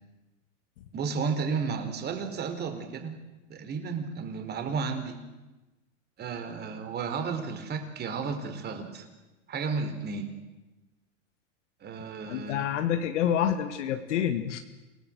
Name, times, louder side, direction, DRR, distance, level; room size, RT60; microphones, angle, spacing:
voice 1, 0.9-3.1 3.5-5.2 6.2-9.0 9.5-10.4 11.8-12.7, right 5 dB, 25° right, 7 dB, 4.1 m, -33 dB
voice 2, 12.3-14.6, left 9 dB, 70° left, 7 dB, 2.0 m, -28 dB
28.0 x 18.0 x 7.9 m, 1.1 s
supercardioid pair, 135°, 37 cm